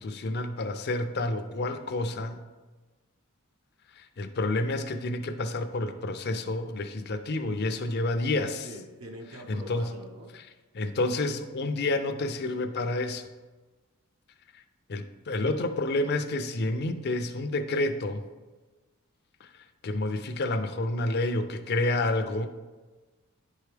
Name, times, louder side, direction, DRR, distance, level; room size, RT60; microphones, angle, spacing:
voice 1, 0.0-2.4 4.0-8.7 9.5-9.9 10.4-10.5 10.7-13.2 14.9-18.2 19.4-19.5 19.8-22.5, left 2 dB, 50° left, 8 dB, 0.5 m, -29 dB
voice 2, 8.6-10.3, equal, 75° right, 1 dB, 0.8 m, -44 dB
10.5 x 4.6 x 3.3 m, 1.2 s
head